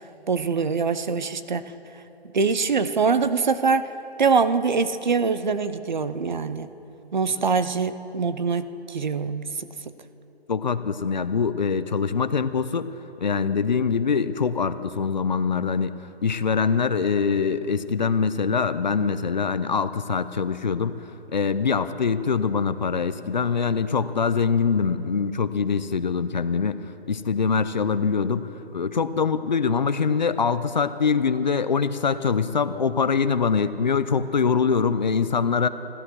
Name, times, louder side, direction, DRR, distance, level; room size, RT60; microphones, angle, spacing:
voice 1, 0.3-1.6 2.2-3.9 4.2-6.7 7.1-9.7, right 5 dB, 45° right, 13 dB, 0.6 m, -23 dB
voice 2, 10.5-12.9 13.2-21.0 21.3-26.8 27.1-35.7, left 5 dB, 45° left, 12 dB, 0.6 m, -24 dB
16.0 x 12.0 x 6.1 m, 3.0 s
hypercardioid pair, 175°, 32 cm